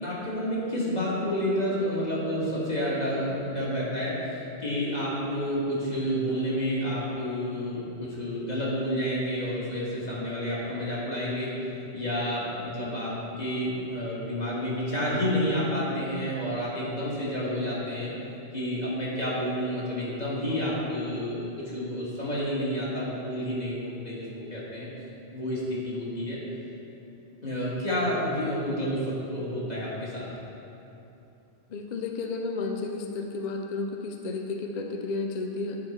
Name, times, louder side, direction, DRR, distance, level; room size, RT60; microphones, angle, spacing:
voice 1, 0.0-4.1 4.6-18.1 18.5-24.9 25.3-26.4 27.4-30.3, equal, 40° left, -8 dB, 1.7 m, -30 dB
voice 2, 31.7-35.8, left 3 dB, 55° left, 3 dB, 0.5 m, -32 dB
8.6 x 4.6 x 4.2 m, 2.9 s
omnidirectional pair, 1.1 m